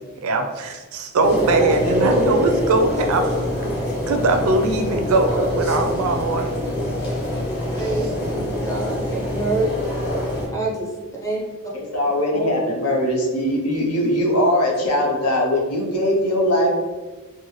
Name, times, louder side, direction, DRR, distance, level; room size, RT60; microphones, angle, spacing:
voice 1, 0.2-3.5 4.1-6.5 7.8-8.1, right 2 dB, 70° right, 5 dB, 0.4 m, -21 dB
sound 1, 1.2-10.5, left 1 dB, 45° left, 1.0 m, -24 dB
voice 2, 7.7-9.7 10.5-10.9 11.2-11.4 12.3-12.5, right 3 dB, 15° left, -3 dB, 0.6 m, -26 dB
voice 3, 11.7-16.7, left 1 dB, 85° left, -1 dB, 0.8 m, -20 dB
3.8 x 2.1 x 3.1 m, 1.3 s
head